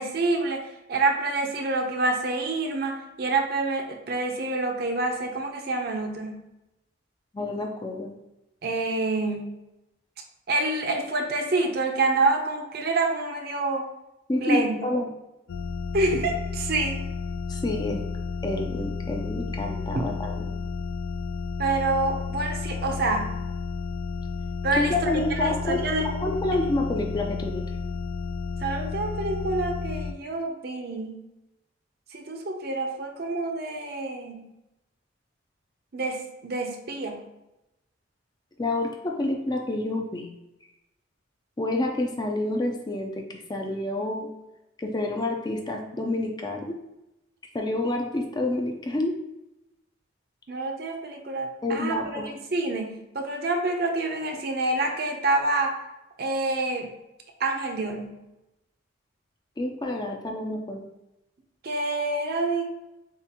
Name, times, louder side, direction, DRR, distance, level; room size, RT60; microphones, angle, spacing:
voice 1, 0.0-6.4 8.6-9.5 10.5-13.9 14.4-14.8 15.9-17.1 21.6-23.3 24.6-26.1 28.6-31.2 32.1-34.5 35.9-37.2 50.5-55.8 56.2-56.9 57.4-58.2 61.6-62.7, right 2 dB, 50° right, 3 dB, 0.6 m, -27 dB
voice 2, 7.3-8.1 14.3-15.1 17.5-18.0 18.4-20.5 24.9-27.6 38.6-40.3 41.6-44.3 44.8-46.8 47.5-49.2 51.6-52.3 59.6-60.9, left 2 dB, 20° left, 2 dB, 0.4 m, -28 dB
sound 1, 15.5-30.1, left 4 dB, 85° left, 0.4 m, -32 dB
7.1 x 2.5 x 2.9 m, 0.93 s
head